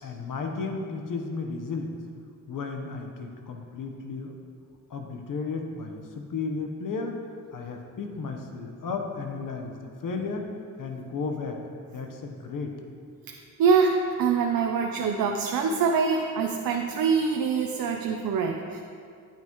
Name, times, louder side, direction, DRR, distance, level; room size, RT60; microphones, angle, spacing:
voice 1, 0.0-2.0 2.5-4.3 4.9-7.2 7.5-10.5 10.8-11.6 11.9-12.7, left 4 dB, 70° left, 3 dB, 1.2 m, -34 dB
voice 2, 13.3-18.8, right 5 dB, 85° right, 2 dB, 0.7 m, -25 dB
10.0 x 9.5 x 3.1 m, 2.3 s
cardioid pair, 85°, 34 cm